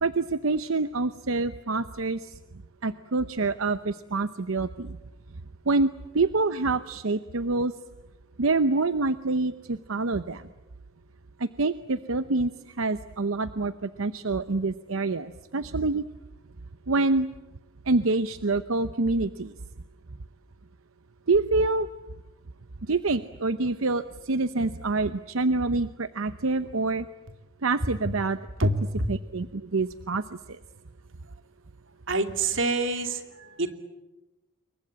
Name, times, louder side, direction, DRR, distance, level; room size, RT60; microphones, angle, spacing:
voice 1, 0.0-2.3 2.8-5.0 5.7-5.9 6.1-7.7 8.4-10.4 11.4-12.5 12.8-16.0 16.9-17.3 17.9-19.5 21.3-21.9 22.9-27.1 27.6-28.7 29.1-30.2, right 3 dB, 90° right, 12 dB, 0.8 m, -26 dB
voice 2, 28.6-29.1 32.1-33.7, right 2 dB, 70° right, 6 dB, 2.7 m, -26 dB
28.0 x 23.0 x 8.7 m, 1.1 s
head